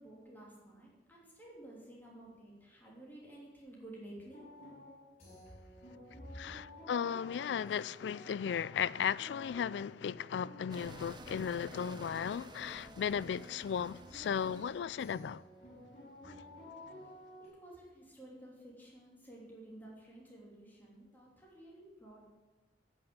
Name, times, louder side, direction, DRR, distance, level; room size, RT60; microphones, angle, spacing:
voice 1, 0.0-4.4 6.3-6.4 17.4-22.2, right 1 dB, 10° left, 3.0 m, -53 dB
sound 1, 4.2-17.5, left 1 dB, 40° left, 4.8 m, -54 dB
voice 2, 6.3-15.4 16.2-16.3, left 7 dB, 80° left, 0.3 m, -36 dB
sound 2, 10.7-17.4, right 2 dB, 25° right, 0.6 m, -53 dB
9.9 x 6.2 x 8.8 m
head